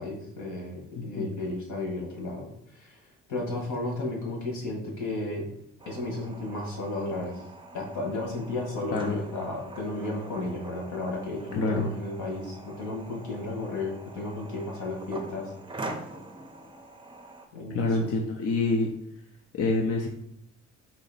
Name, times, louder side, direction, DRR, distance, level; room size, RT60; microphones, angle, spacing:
voice 1, 0.0-3.0 3.3-5.5 5.8-7.4 7.7-15.5 17.5-18.1, left 2 dB, 75° left, 0 dB, 1.6 m, -33 dB
voice 2, 0.9-1.3 8.9-9.2 11.6-11.9 17.7-18.9 19.5-20.1, left 3 dB, 50° left, 1 dB, 0.6 m, -26 dB
sound 1, 5.8-17.5, right 2 dB, 15° right, 0.6 m, -44 dB
4.1 x 2.7 x 4.1 m, 0.73 s
cardioid pair, 90°, 30 cm